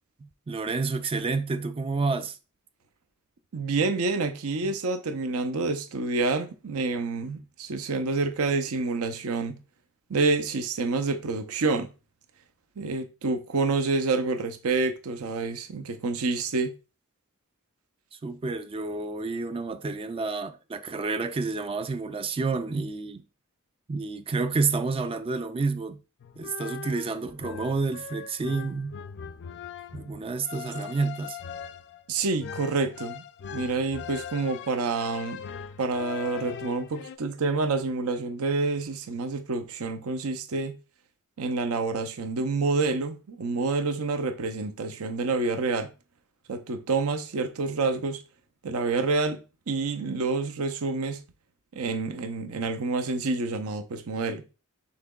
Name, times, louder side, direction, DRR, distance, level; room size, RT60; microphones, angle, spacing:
voice 1, 0.2-2.4 4.6-4.7 18.1-23.2 23.9-26.0 26.4-29.0 29.9-31.4, right 4 dB, 25° right, 0.3 m, -29 dB
voice 2, 3.5-9.6 10.1-11.9 12.8-16.7 32.1-33.2 33.5-35.4 35.8-40.8 41.4-45.9 46.5-48.2 48.6-51.2 51.7-54.4, right 3 dB, 70° right, 0.6 m, -28 dB
sound 1, 26.2-37.2, left 7 dB, 55° left, 0.3 m, -40 dB
5.7 x 3.7 x 2.3 m
head